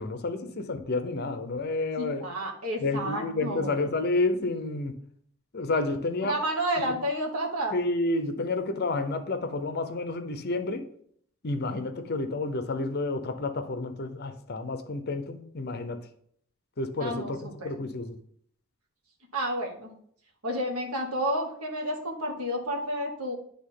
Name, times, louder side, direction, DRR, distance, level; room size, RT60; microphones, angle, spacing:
voice 1, 0.0-2.2 2.8-5.0 5.5-6.4 6.9-7.0 7.7-10.9 11.4-16.1 16.8-18.2, left 2 dB, 45° left, 0.6 m, -30 dB
voice 2, 2.0-3.8 6.2-7.8 17.0-17.7 19.3-19.9 20.4-23.3, equal, 85° right, 1.3 m, -30 dB
9.6 x 3.5 x 3.8 m
head